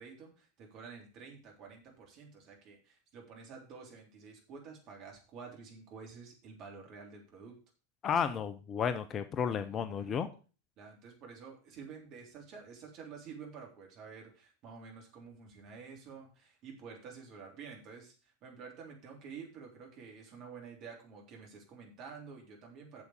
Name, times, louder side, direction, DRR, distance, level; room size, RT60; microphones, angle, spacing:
voice 1, 0.0-7.6 9.6-10.2 10.8-23.0, right 5 dB, 40° right, 1 dB, 3.4 m, -50 dB
voice 2, 8.0-10.3, left 7 dB, 25° left, 12 dB, 0.7 m, -32 dB
7.8 x 7.2 x 6.4 m, 0.36 s
figure-of-eight pair, 90°, 0 cm